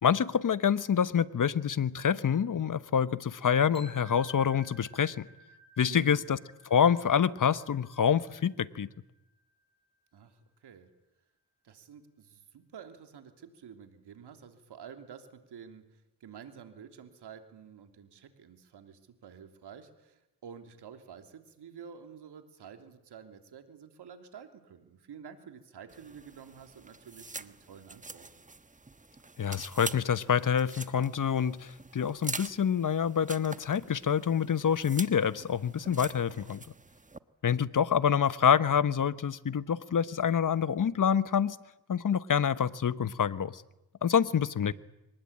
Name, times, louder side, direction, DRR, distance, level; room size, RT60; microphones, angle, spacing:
voice 1, 0.0-5.3 5.8-6.4 6.7-8.9 29.4-36.6 37.4-41.6 41.9-43.6 44.0-44.7, left 8 dB, 50° left, 15 dB, 1.2 m, -27 dB
sound 1, 3.7-9.7, right 1 dB, 15° left, 6.6 m, -56 dB
voice 2, 5.8-6.3 10.1-10.9 11.6-28.3, right 7 dB, 75° right, 6 dB, 3.1 m, -50 dB
sound 2, 25.9-37.2, right 3 dB, 20° right, 1.2 m, -45 dB
24.0 x 19.5 x 8.7 m, 0.94 s
cardioid pair, 55°, 40 cm